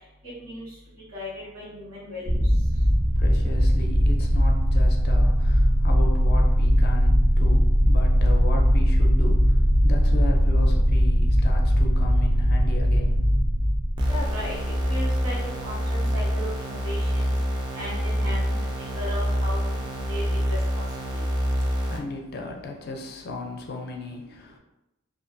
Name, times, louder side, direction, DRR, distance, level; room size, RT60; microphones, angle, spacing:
voice 1, 0.2-0.7 1.1-2.4 14.0-15.4 15.6-17.3 17.7-20.8 21.1-21.2, left 1 dB, 80° right, -9 dB, 1.3 m, -36 dB
sound 1, 2.3-15.3, equal, 55° right, 0.7 m, -20 dB
voice 2, 2.8-13.2 21.5-24.6, left 3 dB, 50° left, 2 dB, 0.5 m, -36 dB
sound 2, 14.0-22.0, equal, 20° right, 0.4 m, -26 dB
2.5 x 2.5 x 2.5 m, 0.90 s
head